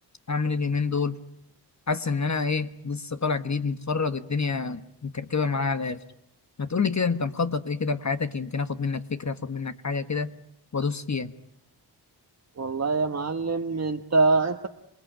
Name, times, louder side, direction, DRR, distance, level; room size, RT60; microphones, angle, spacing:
voice 1, 0.3-1.2 1.9-6.0 6.6-10.3 10.7-11.3, left 4 dB, 40° left, 10 dB, 1.3 m, -27 dB
voice 2, 12.6-14.7, right 3 dB, 40° right, 4 dB, 1.4 m, -24 dB
27.5 x 20.0 x 9.0 m, 0.75 s
cardioid pair, 60°, 42 cm